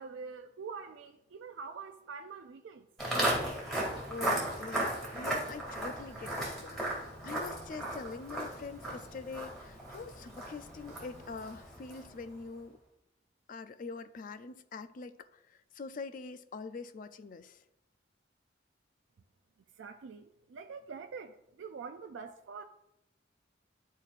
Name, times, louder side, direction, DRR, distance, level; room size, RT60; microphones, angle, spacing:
voice 1, 0.0-2.9 19.8-22.6, right 5 dB, 85° right, 0.4 m, -45 dB
Walk footsteps, 3.0-12.2, right 1 dB, ahead, 2.2 m, -36 dB
voice 2, 4.1-12.8 13.5-17.6, left 4 dB, 45° left, 0.4 m, -44 dB
12.0 x 4.4 x 2.5 m
head